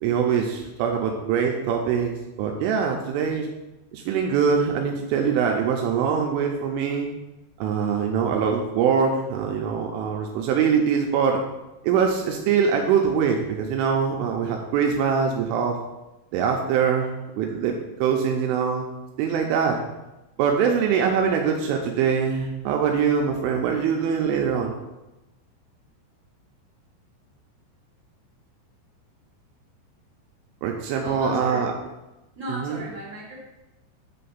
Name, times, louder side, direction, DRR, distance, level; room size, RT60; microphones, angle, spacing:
voice 1, 0.0-3.5 3.9-7.1 7.6-11.4 11.8-15.8 16.3-17.1 17.4-17.7 18.0-18.8 19.2-19.8 20.4-24.8 30.6-31.7 32.5-32.8, right 6 dB, 85° right, 2 dB, 3.0 m, -23 dB
voice 2, 31.0-31.7 32.4-33.4, right 1 dB, 25° right, -9 dB, 2.3 m, -34 dB
8.5 x 3.4 x 5.5 m, 1.0 s
omnidirectional pair, 5.8 m